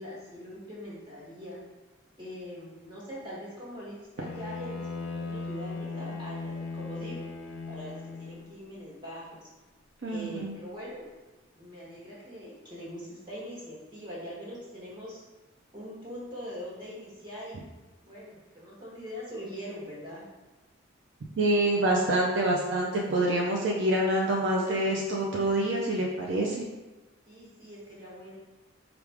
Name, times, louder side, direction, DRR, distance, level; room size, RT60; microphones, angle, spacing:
voice 1, 0.0-1.6 2.2-7.2 7.7-9.5 10.1-11.1 11.5-15.2 15.7-17.7 18.0-20.2 27.3-28.3, equal, 25° right, -7 dB, 1.2 m, -42 dB
Bowed string instrument, 4.2-8.6, left 3 dB, 70° left, 0.5 m, -38 dB
voice 2, 10.0-10.5 21.4-26.7, right 1 dB, 65° right, -2 dB, 0.5 m, -26 dB
4.7 x 2.5 x 3.4 m, 1.1 s
head